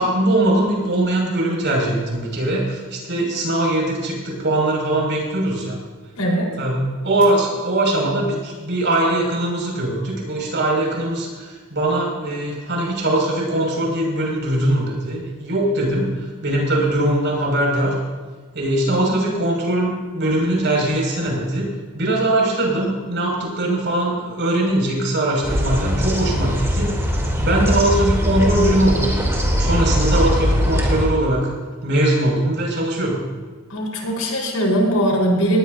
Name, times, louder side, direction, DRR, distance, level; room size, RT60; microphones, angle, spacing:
voice 1, 0.0-5.8 6.6-18.0 18.5-21.7 21.9-29.1 29.6-31.5 31.8-33.2, right 1 dB, 55° right, -1 dB, 5.9 m, -21 dB
voice 2, 6.2-6.5 19.0-19.3 33.7-35.6, right 1 dB, 90° left, -1 dB, 4.3 m, -20 dB
sound 1, 25.4-31.1, equal, 15° right, 3.0 m, -20 dB
19.0 x 19.0 x 2.7 m, 1.4 s
head